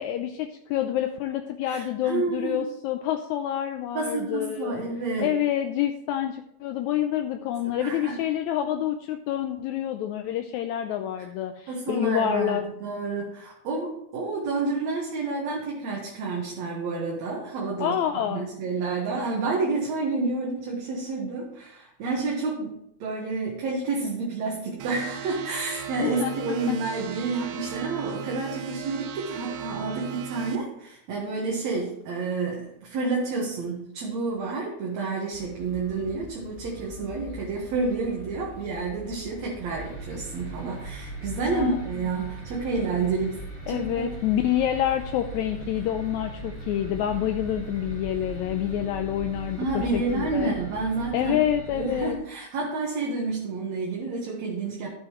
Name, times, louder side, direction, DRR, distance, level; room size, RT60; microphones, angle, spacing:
voice 1, 0.0-4.8 5.2-12.6 17.8-18.5 26.0-26.3 26.7-26.8 41.5-41.8 43.7-50.5 51.1-52.2, left 11 dB, 80° left, 6 dB, 1.8 m, -27 dB
voice 2, 1.6-2.7 3.9-5.3 7.6-8.2 11.7-43.4 43.7-44.0 49.6-51.4 51.7-54.9, right 3 dB, 65° right, -3 dB, 2.6 m, -29 dB
sound 1, 24.8-30.6, right 8 dB, 85° right, 2.3 m, -37 dB
sound 2, 35.3-50.4, left 3 dB, 45° left, 0.8 m, -44 dB
sound 3, 39.6-52.1, right 3 dB, 20° right, 1.8 m, -40 dB
12.5 x 7.7 x 3.1 m, 0.76 s
omnidirectional pair, 3.5 m